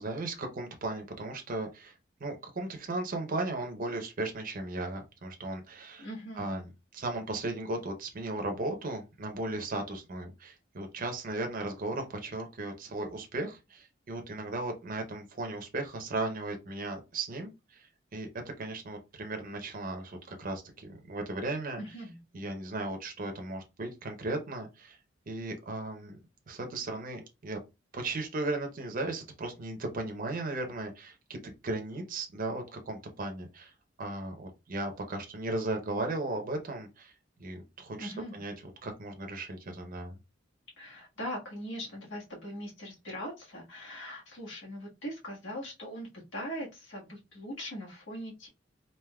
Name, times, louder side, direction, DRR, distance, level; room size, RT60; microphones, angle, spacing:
voice 1, 0.0-1.9 2.2-6.1 6.4-18.3 18.6-21.8 22.3-25.0 25.3-26.2 26.5-27.6 27.9-33.7 34.0-37.1 37.4-38.5 38.8-40.2, right 2 dB, 45° right, 4 dB, 0.6 m, -36 dB
voice 2, 6.0-6.6 21.8-22.2 38.0-38.4 40.8-48.5, equal, 80° left, -3 dB, 1.4 m, -41 dB
3.5 x 2.6 x 2.2 m, 0.26 s
head